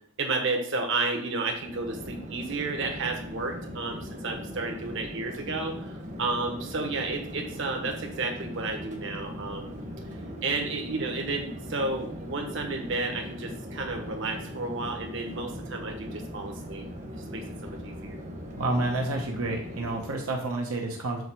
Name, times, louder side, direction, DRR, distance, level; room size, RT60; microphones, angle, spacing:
voice 1, 0.2-9.8 10.4-16.9 17.3-18.2, right 3 dB, 60° right, 3 dB, 1.2 m, -32 dB
Chatter / Fixed-wing aircraft airplane, 1.5-20.4, equal, 35° right, 1.0 m, -40 dB
voice 2, 18.6-21.2, right 2 dB, 80° right, 1 dB, 0.9 m, -29 dB
7.7 x 3.0 x 5.9 m, 0.65 s
head